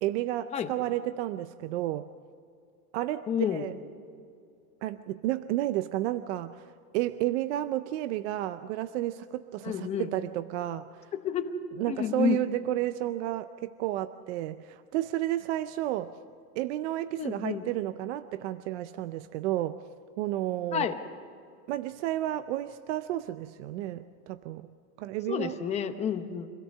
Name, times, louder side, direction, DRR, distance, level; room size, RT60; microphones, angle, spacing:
voice 1, 0.0-2.1 2.9-3.7 4.8-6.7 6.9-10.9 11.8-16.1 16.6-19.8 20.2-20.9 21.7-24.7 25.0-25.6, right 14 dB, 50° right, 12 dB, 0.6 m, -31 dB
voice 2, 3.3-3.7 9.6-10.1 11.1-11.6 11.9-12.4 17.2-17.7 20.7-21.0 25.3-26.5, left 8 dB, 15° left, 7 dB, 0.8 m, -30 dB
26.0 x 17.0 x 6.6 m, 2.4 s
supercardioid pair, 170°, 45 cm